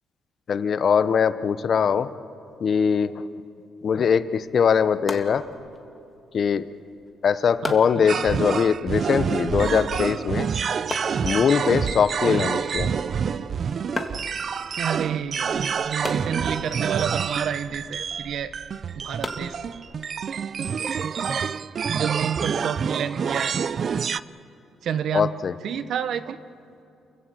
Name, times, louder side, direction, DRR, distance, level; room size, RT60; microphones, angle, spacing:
voice 1, 0.5-2.1 2.6-3.1 3.8-5.4 6.3-6.7 7.2-10.5 11.2-12.9 25.1-25.5, left 6 dB, 55° left, 14 dB, 0.9 m, -21 dB
sound 1, 4.4-20.2, left 3 dB, 25° left, 2.1 m, -40 dB
sound 2, 8.1-24.2, right 6 dB, 50° right, 0.5 m, -27 dB
voice 2, 14.8-18.5 19.0-19.6 20.6-20.7 21.9-23.6 24.8-25.3 25.6-26.4, right 8 dB, 70° right, 13 dB, 1.0 m, -29 dB
29.0 x 16.0 x 7.7 m, 2.7 s
cardioid pair, 90°, 0 cm